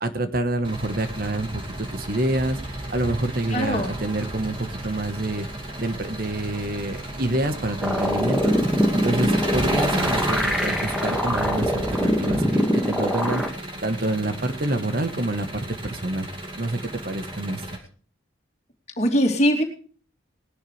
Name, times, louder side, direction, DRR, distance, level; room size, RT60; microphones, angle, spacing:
voice 1, 0.0-2.6 2.9-5.5 5.8-8.5 8.9-13.4 13.8-16.3 16.6-17.6, right 1 dB, 45° right, 10 dB, 1.2 m, -27 dB
Engine, 0.6-17.8, right 1 dB, 25° right, 2.4 m, -32 dB
voice 2, 3.5-3.9 19.0-19.6, equal, 35° left, 3 dB, 2.7 m, -21 dB
sound 1, 7.8-13.5, equal, ahead, 1.7 m, -23 dB
19.5 x 11.5 x 3.3 m, 0.43 s
head